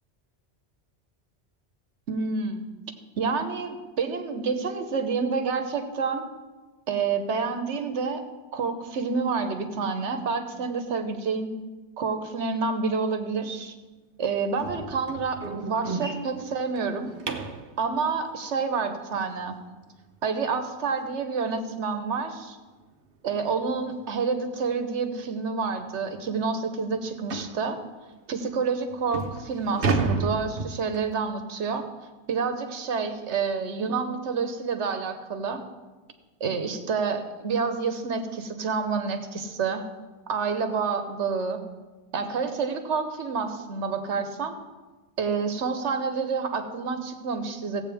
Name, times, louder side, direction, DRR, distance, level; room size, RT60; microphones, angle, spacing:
voice 1, 2.1-2.7 3.2-6.3 6.9-8.2 8.5-11.5 12.0-13.7 14.2-17.1 17.8-19.6 20.2-22.6 23.2-27.8 28.3-31.8 32.3-35.6 36.4-39.8 40.3-41.6 42.1-44.5 45.2-47.8, right 5 dB, 85° right, 7 dB, 1.3 m, -28 dB
sound 1, 14.6-17.7 20.5-20.6 21.1-21.3 21.6-21.7 22.2-22.3 23.4-23.5 23.9-24.1 24.7-24.8 25.2-25.3 25.8-25.9 27.3-27.6 28.3-28.4 28.9-31.2, right 4 dB, 55° right, 1.0 m, -31 dB
16.0 x 8.2 x 3.4 m, 1.3 s
omnidirectional pair, 1.2 m